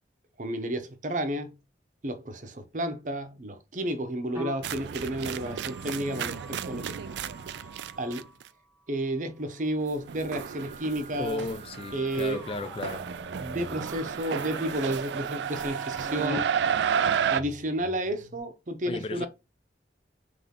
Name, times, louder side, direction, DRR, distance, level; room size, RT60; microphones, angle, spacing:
voice 1, 0.4-1.5 2.0-7.0 8.0-8.3 8.9-11.4 11.9-12.4 13.4-16.5 17.3-19.3, right 1 dB, 45° right, 0.7 m, -31 dB
sound 1, 4.2-8.4 10.0-18.4, equal, 10° right, 1.0 m, -45 dB
sound 2, 4.6-8.4 9.8-17.4, right 8 dB, 75° right, 0.3 m, -32 dB
voice 2, 11.2-13.0 18.9-19.3, left 2 dB, 30° left, 0.4 m, -34 dB
3.6 x 3.3 x 3.7 m
head